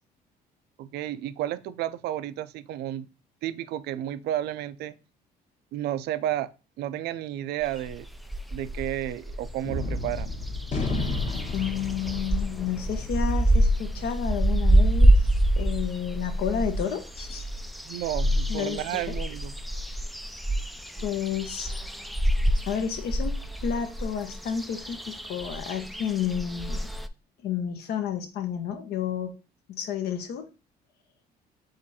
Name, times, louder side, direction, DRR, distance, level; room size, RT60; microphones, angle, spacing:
voice 1, 0.8-3.1 3.4-5.0 5.7-6.5 6.8-8.1 8.5-10.3 17.9-19.5, right 12 dB, 75° right, 0.4 m, -32 dB
sound 1, 7.6-9.8 10.0-27.1, right 1 dB, ahead, 0.3 m, -26 dB
Gunshot gunfire, 9.6-16.2, left 2 dB, 45° left, 1.3 m, -33 dB
voice 2, 11.5-17.4 18.5-18.8 21.0-21.7 22.7-26.8 27.4-29.4 29.7-30.5, left 8 dB, 70° left, 0.9 m, -31 dB
5.0 x 2.5 x 4.1 m
cardioid pair, 110°, 17 cm